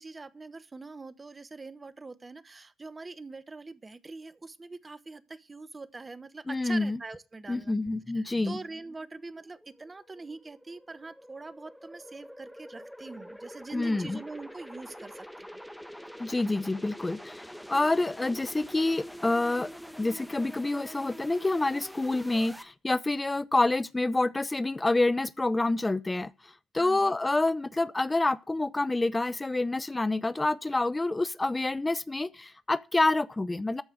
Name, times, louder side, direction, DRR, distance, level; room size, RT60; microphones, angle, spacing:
voice 1, 0.0-7.8 8.1-15.5 26.8-27.2, right 3 dB, 30° right, 1.1 m, -43 dB
voice 2, 6.5-7.0 7.5-8.6 13.7-14.2 16.2-19.7 20.0-33.8, left 2 dB, 20° left, 0.6 m, -28 dB
sound 1, 7.9-22.6, equal, ahead, 1.6 m, -46 dB
13.5 x 5.4 x 7.5 m
hypercardioid pair, 40°, 0 cm